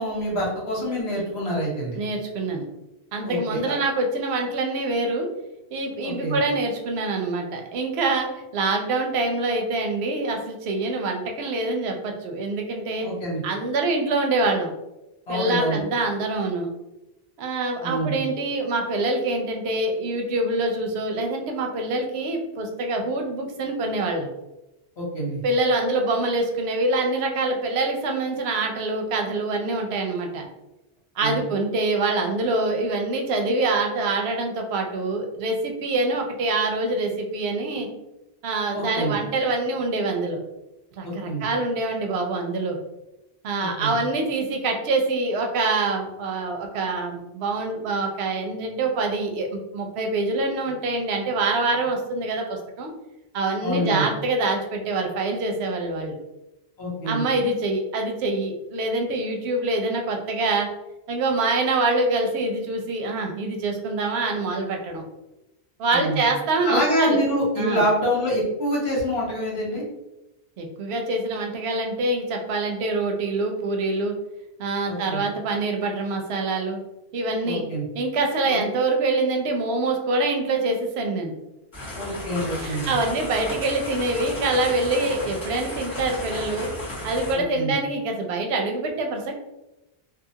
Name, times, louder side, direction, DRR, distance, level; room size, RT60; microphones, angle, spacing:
voice 1, 0.0-2.0 3.2-3.8 6.0-6.4 13.0-13.4 15.3-15.8 17.8-18.2 25.0-25.4 31.2-31.4 38.7-39.1 41.0-41.4 43.6-43.9 53.6-54.1 56.8-57.3 65.9-66.2 66.6-69.8 74.9-75.2 77.4-77.8 78.4-78.6 81.9-82.9 87.5-87.7, equal, 85° left, -4 dB, 1.3 m, -26 dB
voice 2, 2.0-2.7 3.1-5.3 5.7-13.1 13.4-14.7 15.3-16.7 17.4-24.3 25.4-30.5 31.2-37.9 38.4-40.4 41.0-42.8 43.4-52.9 53.3-56.2 57.1-60.7 61.1-65.0 65.8-67.2 67.6-67.8 70.6-74.1 74.6-76.8 77.1-77.6 77.9-81.3 82.6-86.7 87.0-89.4, right 2 dB, 85° right, 3 dB, 0.8 m, -25 dB
sound 1, 81.7-87.3, left 1 dB, 25° left, 1.5 m, -34 dB
2.6 x 2.4 x 2.7 m, 0.96 s
omnidirectional pair, 1.0 m